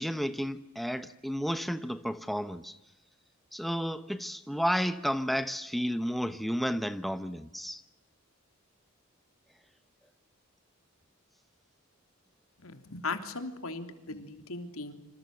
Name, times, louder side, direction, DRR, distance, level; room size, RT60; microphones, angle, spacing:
voice 1, 0.0-2.8 3.5-7.8, equal, ahead, 1.0 m, -32 dB
voice 2, 12.6-15.0, left 3 dB, 85° left, 3.3 m, -38 dB
26.5 x 26.5 x 7.8 m
head